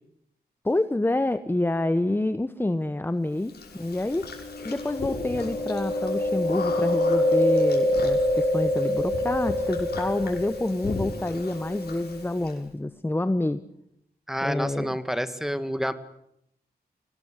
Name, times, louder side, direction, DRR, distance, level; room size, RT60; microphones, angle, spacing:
voice 1, 0.6-4.3 4.6-13.6 14.4-14.9, left 2 dB, 15° left, 12 dB, 1.0 m, -27 dB
Chewing mastication, 3.5-12.5, left 1 dB, 75° left, 6.0 m, -26 dB
voice 2, 14.3-15.9, equal, ahead, 11 dB, 1.8 m, -28 dB
24.5 x 19.0 x 8.2 m, 0.76 s
cardioid pair, 70°, 17 cm